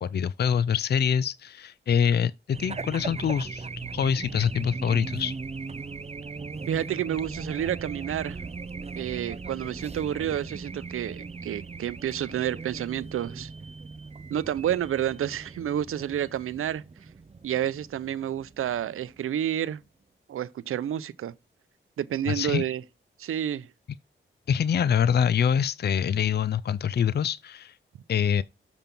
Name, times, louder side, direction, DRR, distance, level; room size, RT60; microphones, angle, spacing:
voice 1, 0.0-5.3 22.3-22.6 24.5-27.8 28.1-28.4, left 8 dB, 50° left, 0.5 m, -25 dB
Race car auto racing / Alarm, 2.5-19.5, right 4 dB, 30° right, 0.7 m, -39 dB
voice 2, 6.7-8.4 9.0-13.5 14.3-16.8 17.4-19.8 20.3-21.3 22.0-22.8 23.2-23.7, right 10 dB, 85° right, 0.6 m, -29 dB
7.1 x 5.2 x 5.9 m
cardioid pair, 65°, 21 cm